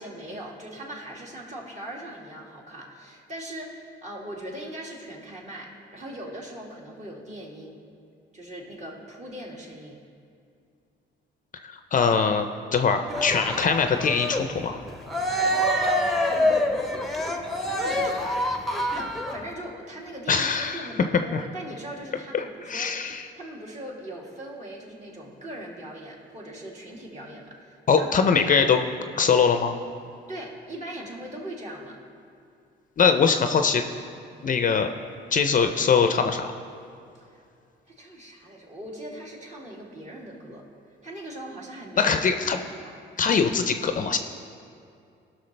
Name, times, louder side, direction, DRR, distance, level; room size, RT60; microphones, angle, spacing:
voice 1, 0.0-7.8 8.3-10.0 15.5-16.8 17.8-18.4 18.9-22.9 23.3-28.4 30.3-32.0 37.3-37.4 37.9-40.7 41.0-42.2 42.8-42.9, right 1 dB, 35° right, -3 dB, 2.2 m, -40 dB
voice 2, 11.6-12.5 12.7-14.8 20.3-20.9 21.3-21.4 22.3-23.3 27.9-28.8 29.1-29.7 33.0-33.8 34.4-34.9 35.3-36.5 42.0-42.6 43.2-44.2, left 6 dB, 40° left, 7 dB, 0.6 m, -22 dB
Cheering, 13.1-19.5, left 1 dB, ahead, 0.9 m, -26 dB
17.0 x 6.2 x 3.3 m, 2.4 s
cardioid pair, 90°, 20 cm